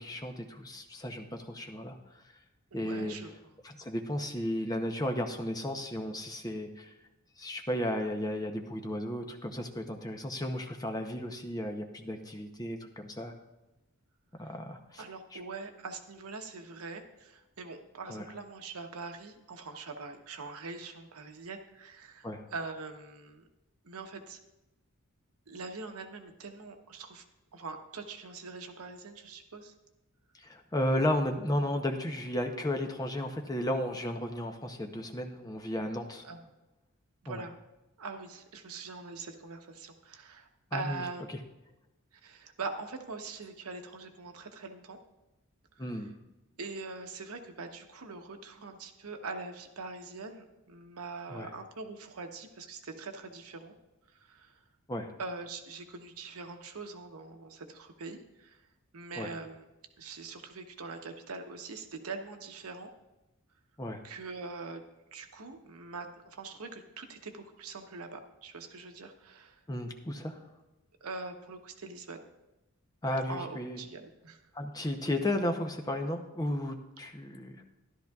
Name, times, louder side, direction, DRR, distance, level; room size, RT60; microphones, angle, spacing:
voice 1, 0.0-2.0 2.7-3.2 3.6-6.9 7.4-13.3 14.4-15.0 15.3-15.4 18.1-18.2 22.2-22.4 30.4-36.2 37.3-37.4 40.7-41.0 45.8-46.1 51.3-51.5 54.9-55.1 59.2-59.3 63.8-64.0 69.7-70.4 73.0-73.8 74.5-77.5, left 1 dB, 15° left, 4 dB, 0.7 m, -34 dB
voice 2, 2.7-3.3 14.4-14.5 15.0-23.4 23.8-24.4 25.5-27.2 27.5-29.7 36.2-36.4 37.2-37.5 38.0-41.2 42.2-45.0 45.8-46.0 46.6-53.7 54.1-54.6 55.2-58.6 58.9-59.7 60.0-62.9 64.0-64.8 65.1-69.6 71.0-72.2 73.3-74.4, right 3 dB, 80° right, 5 dB, 0.9 m, -43 dB
13.0 x 11.5 x 2.4 m, 0.99 s
head